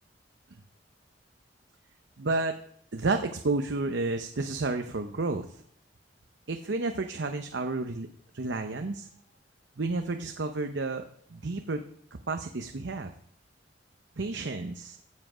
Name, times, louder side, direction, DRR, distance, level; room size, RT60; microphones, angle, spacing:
voice 1, 2.2-2.6 2.9-5.5 6.5-8.1 8.3-9.1 9.8-11.0 11.3-11.8 12.3-13.1 14.2-15.0, right 3 dB, 85° right, 6 dB, 0.7 m, -31 dB
15.5 x 7.6 x 5.0 m, 0.65 s
head